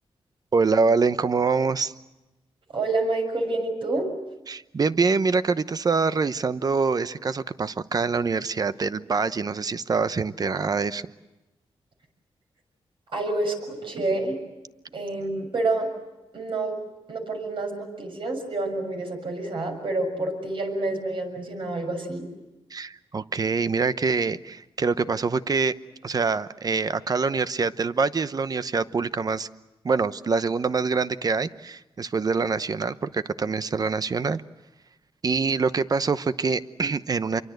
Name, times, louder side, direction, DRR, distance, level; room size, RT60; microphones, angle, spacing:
voice 1, 0.5-1.9 4.5-11.0 22.7-25.7 26.0-29.5 29.8-34.4 35.2-37.4, right 4 dB, 40° right, 14 dB, 0.9 m, -25 dB
voice 2, 2.7-4.1 13.1-14.4 14.9-15.9 16.3-16.8 17.1-22.2, right 2 dB, 60° right, 3 dB, 6.7 m, -28 dB
27.0 x 24.0 x 8.0 m, 1.0 s
wide cardioid pair, 110°, 10 cm